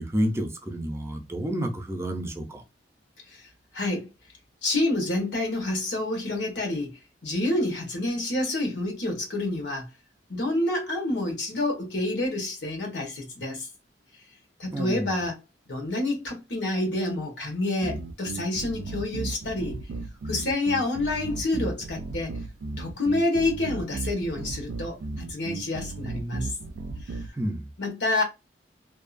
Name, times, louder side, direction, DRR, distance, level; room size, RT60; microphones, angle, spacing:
voice 1, 0.0-2.6 14.7-15.2 27.4-27.7, equal, 15° right, 0.5 m, -30 dB
voice 2, 3.3-4.1 4.6-9.9 10.3-13.7 14.6-15.4 15.7-19.8 20.2-22.4 22.8-26.5 27.0-27.2 27.8-28.2, left 2 dB, 90° left, 1.1 m, -28 dB
sound 1, 17.8-27.3, right 3 dB, 75° right, 0.3 m, -35 dB
2.6 x 2.3 x 2.5 m
head